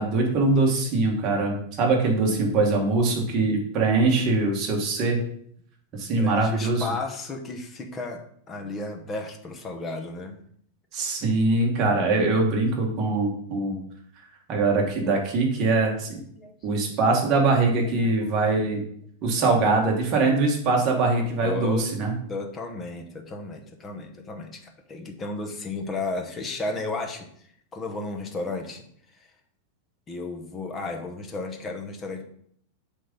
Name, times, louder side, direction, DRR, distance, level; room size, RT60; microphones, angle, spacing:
voice 1, 0.0-5.2 6.0-6.9 10.9-13.8 14.5-16.2 16.6-18.8 19.2-22.1, right 3 dB, 30° right, 0 dB, 1.6 m, -22 dB
voice 2, 2.3-2.7 6.2-10.4 14.9-15.1 16.2-16.9 18.0-18.3 19.2-19.4 21.4-21.9 22.3-27.3 27.7-28.8 29.1-29.3 30.1-32.2, left 3 dB, 15° left, 5 dB, 0.8 m, -34 dB
7.6 x 3.6 x 5.3 m, 0.65 s
supercardioid pair, 170°, 0 cm